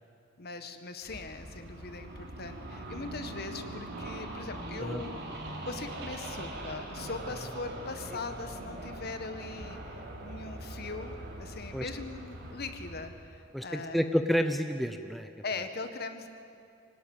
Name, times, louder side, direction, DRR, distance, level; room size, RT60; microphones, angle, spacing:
voice 1, 0.4-5.2 5.6-14.0 15.4-16.3, left 3 dB, 55° left, 8 dB, 1.7 m, -40 dB
sound 1, 1.0-13.1, right 1 dB, 60° right, 4.1 m, -42 dB
voice 2, 13.5-15.3, equal, ahead, 7 dB, 0.8 m, -29 dB
25.0 x 18.0 x 9.1 m, 2.4 s
head